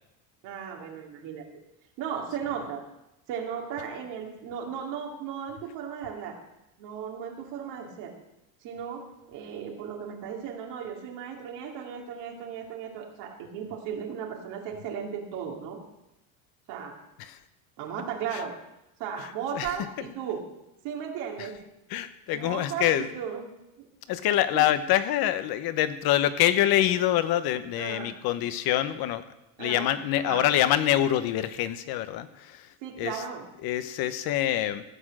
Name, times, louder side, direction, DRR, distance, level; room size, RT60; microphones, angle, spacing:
voice 1, 0.4-1.5 2.0-2.8 3.3-6.4 6.8-8.1 8.6-15.8 16.7-16.9 17.8-18.5 19.0-20.4 20.8-21.6 22.3-23.5 23.8-23.9 24.5-24.7 27.8-28.1 29.6-30.5 32.8-33.4, right 7 dB, 75° right, 0 dB, 2.8 m, -36 dB
voice 2, 21.9-23.1 24.1-29.2 29.6-32.7 33.0-33.2 33.6-34.8, left 12 dB, 60° left, 12 dB, 1.0 m, -25 dB
15.0 x 6.2 x 7.6 m, 0.91 s
cardioid pair, 140°, 42 cm